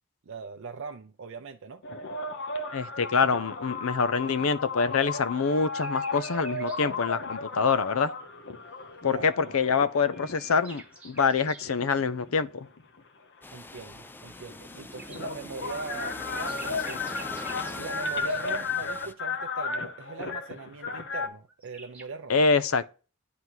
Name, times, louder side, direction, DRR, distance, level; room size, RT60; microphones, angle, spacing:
voice 1, 0.2-1.8 9.1-9.6 13.5-17.1 17.8-22.4, right 4 dB, 65° right, 0.6 m, -41 dB
sound 1, 1.8-10.6 11.3-13.0 14.2-14.3 14.5-21.3, left 3 dB, 60° left, 1.0 m, -34 dB
voice 2, 2.7-8.1 9.0-12.7 22.3-22.8, left 5 dB, 75° left, 0.6 m, -25 dB
sound 2, 5.5-6.8 9.4-11.7 14.4-18.5 21.2-21.3 21.5-22.0, right 2 dB, 5° right, 1.1 m, -49 dB
sound 3, 13.4-19.1, left 2 dB, 10° left, 0.3 m, -42 dB
9.4 x 3.7 x 4.5 m
head